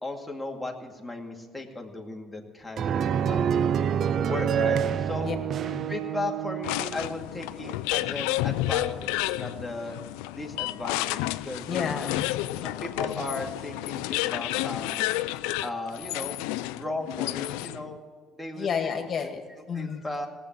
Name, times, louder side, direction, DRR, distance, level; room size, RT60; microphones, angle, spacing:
voice 1, 0.0-2.9 3.3-3.5 4.2-5.3 5.9-10.0 10.3-11.7 12.6-15.0 15.6-16.4 16.7-18.0 18.4-18.7 19.5-20.3, left 2 dB, 5° left, 0 dB, 2.4 m, -36 dB
sound 1, 2.8-6.9, right 8 dB, 55° right, 0.5 m, -27 dB
sound 2, 6.6-17.9, left 16 dB, 90° left, 0.4 m, -30 dB
voice 2, 11.7-12.3 18.6-19.4 19.7-20.0, left 6 dB, 50° left, 5 dB, 2.1 m, -30 dB
18.0 x 7.8 x 8.8 m, 1.5 s
supercardioid pair, 80°, 0 cm